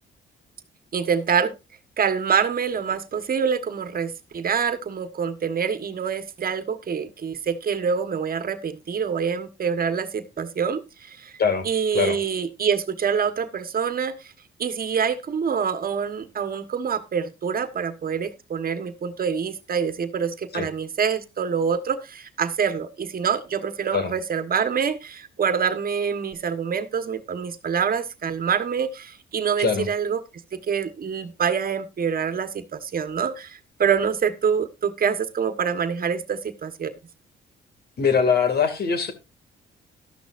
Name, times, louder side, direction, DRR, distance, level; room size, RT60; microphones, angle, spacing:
voice 1, 0.9-1.5 2.0-11.3 11.6-14.3 14.6-30.2 30.5-36.9, right 7 dB, 45° right, 1.4 m, -26 dB
voice 2, 38.0-39.1, left 6 dB, 55° left, 2.4 m, -22 dB
12.5 x 12.5 x 2.6 m
cardioid pair, 90°, 20 cm